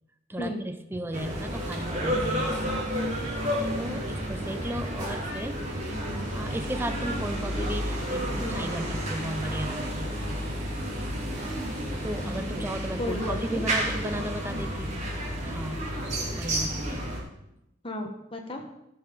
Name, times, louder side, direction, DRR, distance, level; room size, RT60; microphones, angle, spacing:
voice 1, 0.3-2.8 3.8-5.7 6.3-10.2 12.0-15.0 15.4-15.9 16.4-17.1, right 1 dB, 10° right, 9 dB, 0.5 m, -35 dB
sound 1, 1.1-17.2, equal, 40° right, 3.0 m, -31 dB
voice 2, 5.9-6.3 8.4-8.6 13.0-13.6 17.8-18.7, left 1 dB, 30° left, 4 dB, 1.1 m, -34 dB
14.5 x 6.9 x 5.1 m, 0.86 s
head